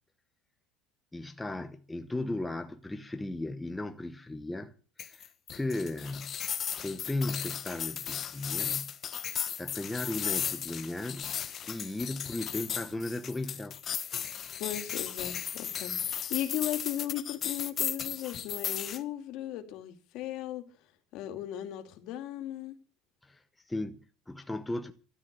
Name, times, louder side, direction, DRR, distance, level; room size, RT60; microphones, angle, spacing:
voice 1, 1.1-4.7 5.0-6.4 6.8-8.9 9.6-11.4 11.7-13.8 23.2-24.9, left 2 dB, 5° left, 0.9 m, -36 dB
sound 1, 5.0-19.0, left 9 dB, 30° left, 1.2 m, -35 dB
voice 2, 14.6-20.7 21.1-22.8, left 12 dB, 50° left, 2.5 m, -37 dB
13.5 x 12.0 x 6.8 m
cardioid pair, 180°, 0 cm